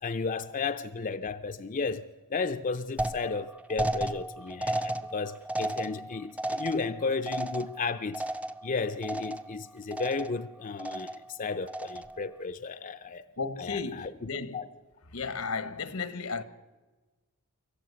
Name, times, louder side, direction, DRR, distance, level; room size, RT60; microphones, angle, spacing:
voice 1, 0.0-8.2 8.6-13.2 13.6-14.1 14.5-14.7, left 4 dB, 40° left, 0.6 m, -33 dB
sound 1, 3.0-8.8 9.0-9.6 9.9-10.5 10.8-11.3 11.7-12.2, right 1 dB, 5° right, 0.6 m, -34 dB
voice 2, 13.4-14.7 15.1-16.4, left 4 dB, 80° left, 1.2 m, -34 dB
25.5 x 15.0 x 8.2 m
head